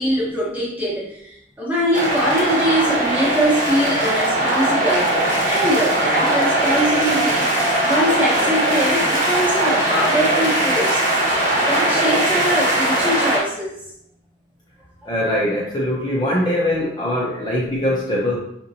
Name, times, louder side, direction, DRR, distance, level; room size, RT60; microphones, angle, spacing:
voice 1, 0.0-5.1 5.4-11.0 11.6-13.7, equal, 10° right, -5 dB, 0.9 m, -22 dB
sound 1, 1.9-13.4, right 1 dB, 45° right, 1.0 m, -20 dB
voice 2, 15.1-18.4, left 1 dB, 25° left, -6 dB, 0.6 m, -22 dB
5.0 x 2.9 x 2.6 m, 0.73 s
head